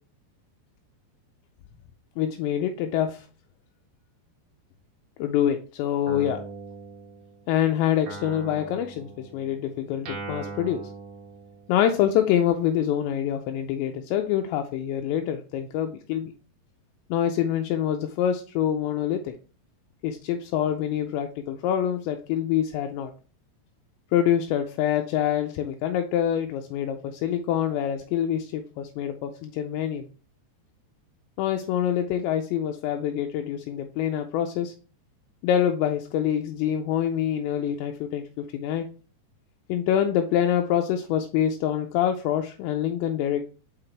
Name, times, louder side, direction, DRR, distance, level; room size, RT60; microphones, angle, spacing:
voice 1, 2.2-3.3 5.2-6.4 7.5-10.8 11.7-16.3 17.1-19.3 20.0-23.1 24.1-30.1 31.4-34.7 35.4-38.9 39.7-43.4, left 10 dB, 85° left, 5 dB, 2.7 m, -26 dB
Guitar, 6.1-7.6 8.1-11.9, right 3 dB, 90° right, 1.5 m, -40 dB
6.3 x 5.8 x 3.3 m, 0.37 s
omnidirectional pair, 5.3 m